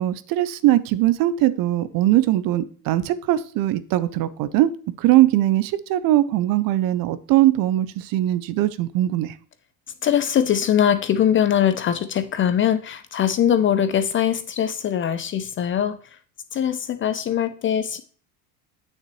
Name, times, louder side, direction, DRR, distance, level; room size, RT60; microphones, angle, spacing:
voice 1, 0.0-4.7 5.0-9.4, right 14 dB, 45° right, 0.6 m, -20 dB
voice 2, 10.0-16.0 16.5-18.0, left 9 dB, 25° left, 0.4 m, -21 dB
8.8 x 6.6 x 3.0 m
hypercardioid pair, 70°, 48 cm